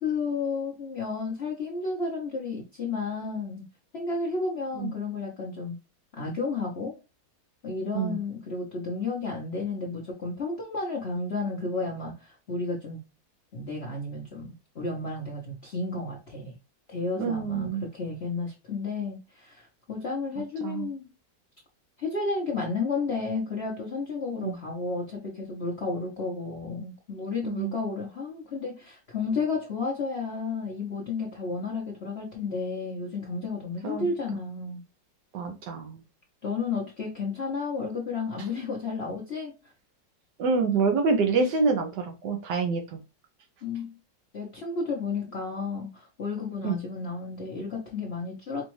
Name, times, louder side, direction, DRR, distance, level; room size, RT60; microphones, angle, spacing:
voice 1, 0.0-3.6 3.9-5.8 6.1-6.9 7.6-13.0 13.5-14.5 14.7-16.5 16.9-21.0 22.0-34.8 36.4-39.5 43.6-43.9 44.3-48.7, left 4 dB, 45° left, -2 dB, 1.0 m, -32 dB
voice 2, 17.2-17.9 20.6-20.9 24.4-24.6 27.4-27.8 33.8-34.1 35.3-36.0 38.4-38.5 40.4-43.0 46.6-46.8, right 4 dB, 70° right, 4 dB, 1.2 m, -27 dB
5.1 x 2.4 x 3.1 m, 0.29 s
omnidirectional pair, 2.0 m